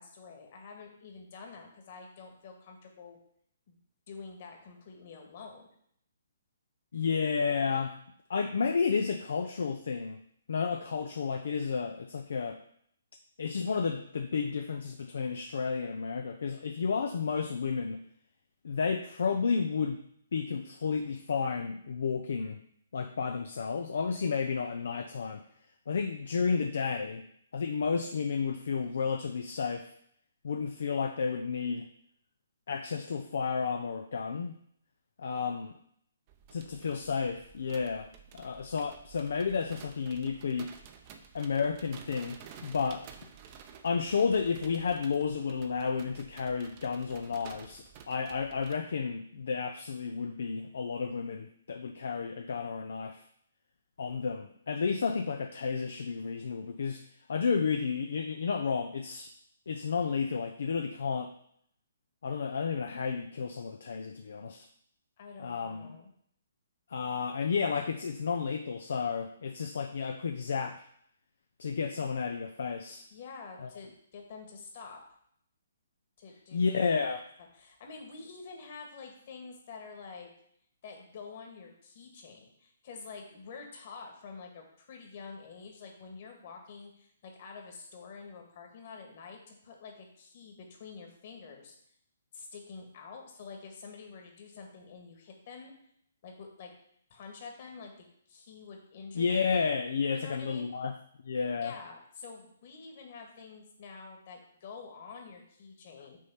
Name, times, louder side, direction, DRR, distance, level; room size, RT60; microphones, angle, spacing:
voice 1, 0.0-3.2 3.7-3.8 4.1-5.7 65.2-66.1 73.1-75.0 76.2-76.8 77.5-80.3 80.8-91.7 92.3-95.7 96.2-96.7 97.1-99.5 100.1-100.7 101.6-106.2, left 5 dB, 45° left, 2 dB, 1.9 m, -48 dB
voice 2, 6.9-7.9 8.3-10.2 10.5-12.6 13.4-18.0 18.6-20.0 20.3-22.6 22.9-25.4 25.9-27.2 27.5-29.9 30.4-31.9 32.7-34.5 35.2-35.7 36.5-40.7 41.3-42.4 42.6-43.1 43.8-53.2 54.0-57.0 57.3-59.3 59.7-61.3 62.2-64.7 65.4-66.0 66.9-70.9 71.6-73.0 73.6-73.7 76.5-77.2 99.1-100.9 101.2-101.8, left 5 dB, 65° left, 6 dB, 0.5 m, -32 dB
sound 1, 36.3-48.8, right 7 dB, 35° right, 0.8 m, -52 dB
6.3 x 4.1 x 5.8 m, 0.68 s
figure-of-eight pair, 130°, 0 cm